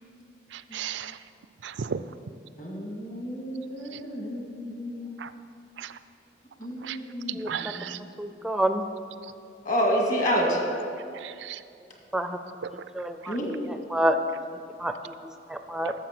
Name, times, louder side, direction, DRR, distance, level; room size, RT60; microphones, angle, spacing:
voice 1, 0.5-1.2 1.6-2.0 3.9-4.0 5.2-5.3 5.8-6.0 6.8-7.0 7.5-8.0 9.2-9.3 11.1-11.6 12.6-12.8 15.8-15.9, right 7 dB, 80° right, 13 dB, 0.4 m, -35 dB
voice 2, 2.6-5.2 6.6-8.1 9.7-10.6 13.3-13.5, equal, 45° left, 0 dB, 1.9 m, -29 dB
voice 3, 8.2-8.8 12.1-12.4 12.9-13.4 13.9-14.2 14.8-15.1 15.5-15.9, right 1 dB, 5° right, 8 dB, 0.4 m, -27 dB
12.0 x 7.2 x 5.9 m, 2.4 s
head